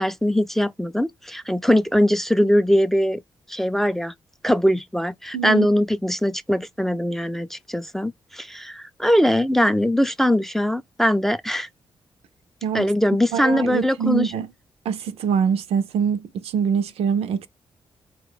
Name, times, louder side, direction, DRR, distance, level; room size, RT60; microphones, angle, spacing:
voice 1, 0.0-3.2 3.5-4.1 4.4-11.7 12.7-14.3, equal, 5° left, 0.4 m, -21 dB
voice 2, 5.3-5.7 12.6-12.9 13.3-14.5 14.8-17.5, right 7 dB, 80° right, 0.4 m, -24 dB
4.4 x 2.2 x 3.8 m
supercardioid pair, 55°, 10 cm